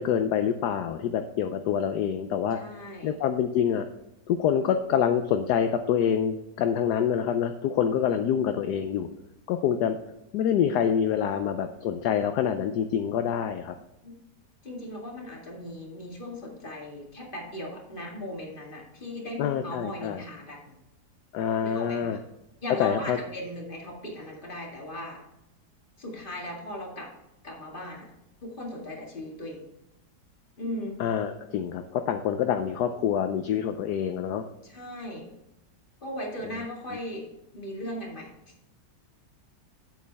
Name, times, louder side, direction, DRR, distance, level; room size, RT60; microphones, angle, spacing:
voice 1, 0.0-2.6 3.0-3.9 4.3-9.1 9.5-10.0 10.3-13.7 19.4-20.2 21.3-22.2 22.8-23.2 31.0-34.4, left 8 dB, 70° left, 8 dB, 1.1 m, -26 dB
voice 2, 2.6-3.2 14.0-14.1 14.6-20.8 21.6-22.2 22.6-25.2 26.0-27.1 27.4-28.1 28.4-29.6 30.6-31.0 34.6-35.3 36.0-37.2 37.5-38.3, left 1 dB, 30° left, -1 dB, 2.2 m, -38 dB
8.6 x 8.3 x 3.4 m, 0.90 s
omnidirectional pair, 1.9 m